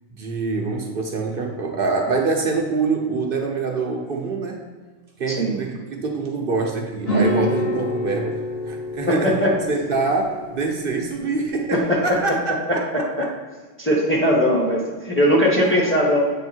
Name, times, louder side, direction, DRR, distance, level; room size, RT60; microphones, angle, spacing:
voice 1, 0.2-4.7 5.2-13.3 15.6-16.1, right 4 dB, 50° right, 2 dB, 0.9 m, -25 dB
voice 2, 5.3-5.6 9.1-9.5 11.7-12.2 12.9-13.3 13.8-16.2, equal, 10° left, -3 dB, 1.1 m, -19 dB
sound 1, 7.0-12.2, left 1 dB, 50° left, 1.8 m, -28 dB
8.3 x 3.6 x 4.4 m, 1.4 s
omnidirectional pair, 1.3 m